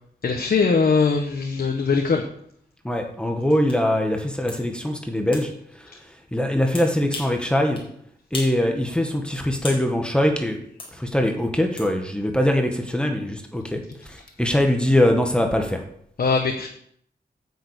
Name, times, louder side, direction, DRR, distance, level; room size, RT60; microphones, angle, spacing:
voice 1, 0.2-2.2 16.2-16.7, left 4 dB, 60° left, 3 dB, 1.2 m, -21 dB
voice 2, 2.8-5.5 6.3-7.8 8.3-10.6 11.0-13.8 14.1-15.8, left 1 dB, 5° left, 3 dB, 1.5 m, -22 dB
sound 1, 3.7-3.8 4.5-4.6 5.3-5.5 6.7-7.4 7.8-7.9 8.3-8.6 8.9-9.9 10.8-10.9 11.8-11.9, left 2 dB, 30° left, 4.3 m, -35 dB
9.5 x 6.9 x 8.2 m, 0.66 s
wide cardioid pair, 160°, 17 cm